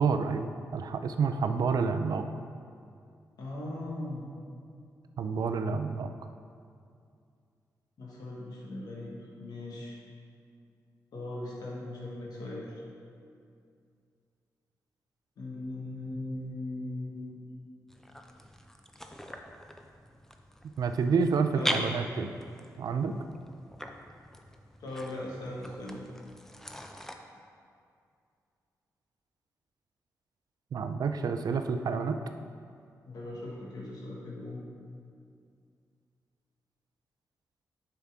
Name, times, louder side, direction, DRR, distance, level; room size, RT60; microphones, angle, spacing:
voice 1, 0.0-2.2 5.2-6.1 20.8-22.3 22.8-23.1 30.7-32.2, right 5 dB, 70° right, 8 dB, 0.4 m, -29 dB
voice 2, 3.4-4.3 8.0-9.9 11.1-12.7 15.4-17.7 21.5-21.8 24.8-26.0 33.0-34.6, left 2 dB, 75° left, -4 dB, 1.7 m, -39 dB
sound 1, 17.9-27.1, equal, 5° left, 0.6 m, -41 dB
7.2 x 5.7 x 3.6 m, 2.3 s
cardioid pair, 55°, 7 cm